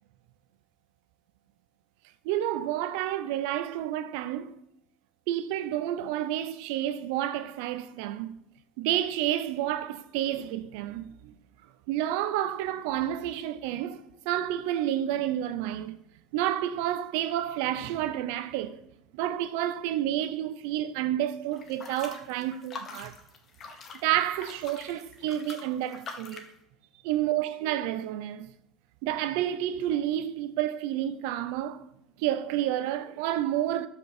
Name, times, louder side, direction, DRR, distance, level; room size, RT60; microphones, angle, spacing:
voice 1, 2.2-4.6 5.3-8.4 8.8-11.3 11.9-16.0 16.3-18.8 19.1-23.2 24.0-26.5 27.0-28.5 29.0-31.8 32.2-33.9, right 12 dB, 85° right, 0.6 m, -30 dB
sound 1, 21.5-26.5, left 4 dB, 30° left, 1.1 m, -44 dB
13.0 x 5.3 x 4.4 m
cardioid pair, 180°, 0 cm